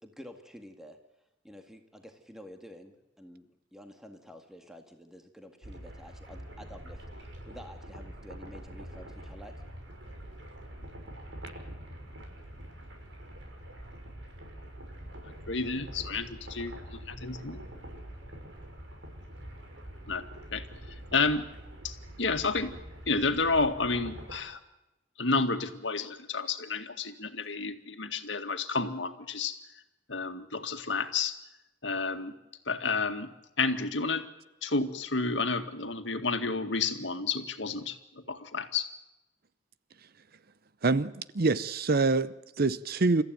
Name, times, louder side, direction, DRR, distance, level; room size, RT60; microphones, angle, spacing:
voice 1, 0.0-1.0 1.4-9.5, equal, 5° right, 2.0 m, -50 dB
sound 1, 5.6-24.4, right 1 dB, 80° right, 6.3 m, -45 dB
voice 2, 15.5-17.7 20.1-20.2 20.5-20.6 21.1-21.5 21.8-22.7 23.1-24.6 25.2-29.6 30.1-31.4 31.8-32.3 32.7-33.3 33.6-34.2 34.6-38.9, left 4 dB, 75° left, 2.1 m, -30 dB
voice 3, 40.8-43.2, right 3 dB, 55° right, 0.7 m, -26 dB
29.0 x 14.5 x 9.3 m
head